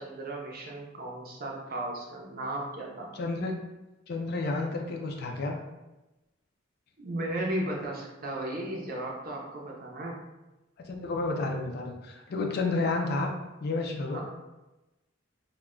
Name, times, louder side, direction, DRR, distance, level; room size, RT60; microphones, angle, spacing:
voice 1, 0.0-3.1 7.0-10.1 14.1-14.2, right 1 dB, 45° right, -1 dB, 0.5 m, -35 dB
voice 2, 3.1-3.5 4.1-5.6 10.8-13.3 13.6-14.2, left 3 dB, 50° left, 2 dB, 0.4 m, -31 dB
2.2 x 2.1 x 3.6 m, 1.0 s
head